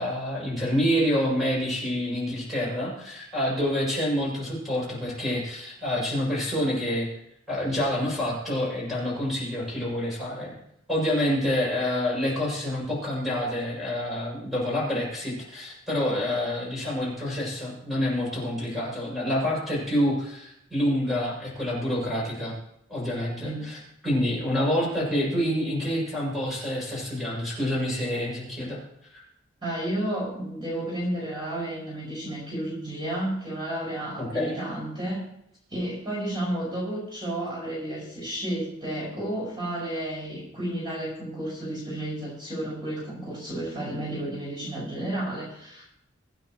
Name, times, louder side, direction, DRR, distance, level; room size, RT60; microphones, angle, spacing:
voice 1, 0.0-7.1 7.5-10.5 10.9-22.5 22.9-23.8 24.0-28.8 29.1-29.2 34.2-34.6, left 1 dB, ahead, -6 dB, 6.7 m, -27 dB
voice 2, 29.6-35.2 35.7-45.8, right 1 dB, 25° right, -6 dB, 5.8 m, -32 dB
25.0 x 9.1 x 3.1 m, 0.75 s
head